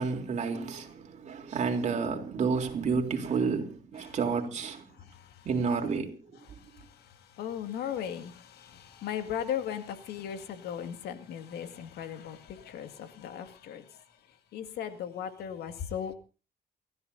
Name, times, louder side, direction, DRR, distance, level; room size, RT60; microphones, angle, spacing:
voice 1, 0.0-4.9 5.4-6.1, right 5 dB, 45° right, 3.4 m, -30 dB
voice 2, 5.0-5.5 6.5-14.0 14.5-16.1, left 9 dB, 75° left, 2.1 m, -38 dB
29.0 x 13.5 x 2.7 m
cardioid pair, 110°, 17 cm